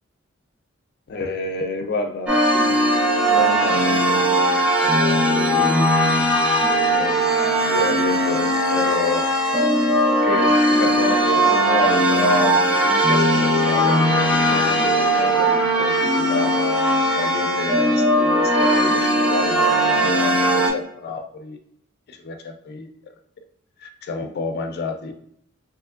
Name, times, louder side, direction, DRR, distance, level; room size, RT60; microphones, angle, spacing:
voice 1, 1.1-2.4 2.7-2.8 3.3-7.2 7.7-9.3 10.2-21.6 22.1-22.9 23.8-25.1, left 3 dB, 50° left, 6 dB, 0.3 m, -29 dB
sound 1, 2.3-20.7, right 1 dB, 5° right, 0.5 m, -19 dB
3.2 x 2.9 x 2.4 m, 0.69 s
head